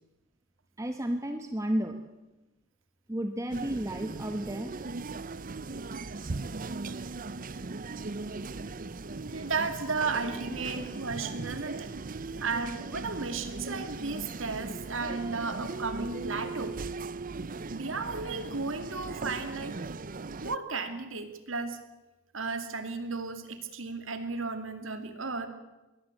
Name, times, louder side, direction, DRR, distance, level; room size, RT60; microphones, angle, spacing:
voice 1, 0.8-2.0 3.1-4.7, equal, 15° right, 6 dB, 1.2 m, -32 dB
sound 1, 3.5-20.6, right 3 dB, 45° right, 0.7 m, -38 dB
voice 2, 9.0-11.9 12.4-16.8 17.7-19.8 20.4-21.8 22.3-25.5, right 4 dB, 75° right, 8 dB, 2.4 m, -34 dB
23.0 x 17.5 x 8.3 m, 1.0 s
head